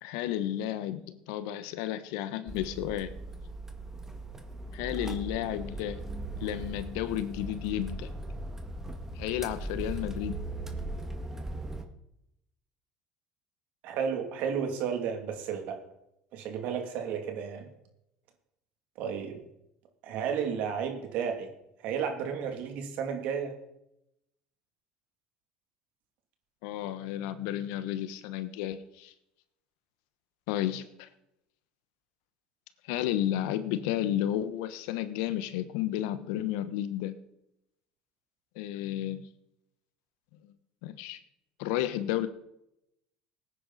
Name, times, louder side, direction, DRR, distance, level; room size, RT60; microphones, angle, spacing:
voice 1, 0.0-3.1 4.7-6.0 6.4-8.1 9.1-10.4 26.6-29.1 30.5-31.1 32.8-37.2 38.5-39.3 40.4-40.5 40.8-41.2 41.6-42.3, left 12 dB, 75° left, 13 dB, 1.1 m, -32 dB
sound 1, 2.5-11.9, right 1 dB, 15° right, 1.9 m, -39 dB
voice 2, 13.8-15.8 16.3-17.7 19.0-19.4 20.0-21.5 21.8-23.5, right 7 dB, 65° right, 4 dB, 2.7 m, -32 dB
18.0 x 9.7 x 4.2 m, 0.82 s
supercardioid pair, 85°, 3 cm